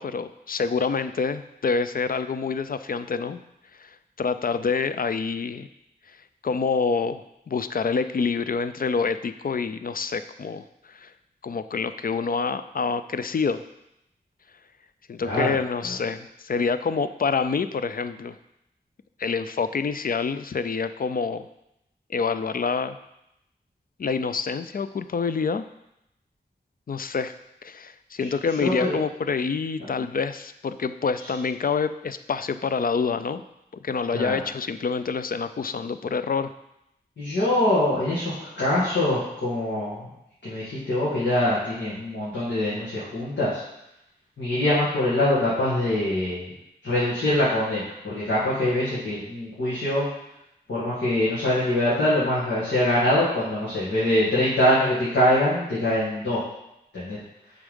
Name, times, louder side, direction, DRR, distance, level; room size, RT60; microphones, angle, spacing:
voice 1, 0.0-3.4 3.8-5.7 6.4-11.1 11.4-13.6 15.1-18.4 19.2-21.5 22.1-23.0 24.0-25.6 26.9-27.3 27.6-33.4 33.8-36.5, left 5 dB, 55° left, 11 dB, 0.4 m, -27 dB
voice 2, 15.2-15.5 15.8-16.0 28.2-28.3 28.6-29.0 34.1-34.4 37.2-40.1 40.4-43.6 44.4-46.5 46.8-50.1 50.7-56.4 56.9-57.2, left 1 dB, 85° left, -10 dB, 2.0 m, -24 dB
6.9 x 3.7 x 5.3 m, 0.84 s
cardioid pair, 40°, 18 cm